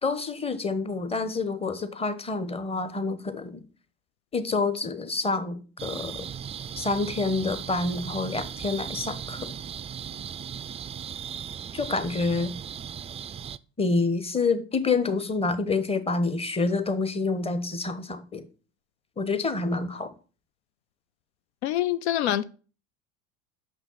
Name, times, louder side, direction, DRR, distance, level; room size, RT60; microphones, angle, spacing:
voice 1, 0.0-3.6 4.3-6.3 6.8-9.5 11.7-12.5 13.8-18.5 19.2-20.1, left 3 dB, 20° left, 1.1 m, -28 dB
sound 1, 5.8-13.6, right 8 dB, 20° right, 0.3 m, -37 dB
voice 2, 21.6-22.4, left 12 dB, 85° left, 0.5 m, -25 dB
6.2 x 6.0 x 5.6 m
hypercardioid pair, 75°, 33 cm